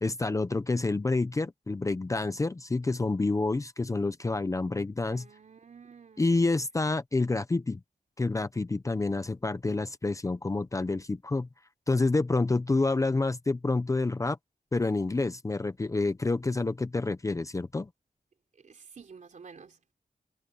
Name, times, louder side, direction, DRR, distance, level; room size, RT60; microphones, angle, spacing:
voice 1, 0.0-5.3 6.2-7.8 8.2-11.5 11.9-14.4 14.7-17.9, left 3 dB, 20° left, 0.6 m, -28 dB
voice 2, 5.1-6.7 18.5-19.9, right 5 dB, 60° right, 3.8 m, -51 dB
wide cardioid pair, 175°, 15 cm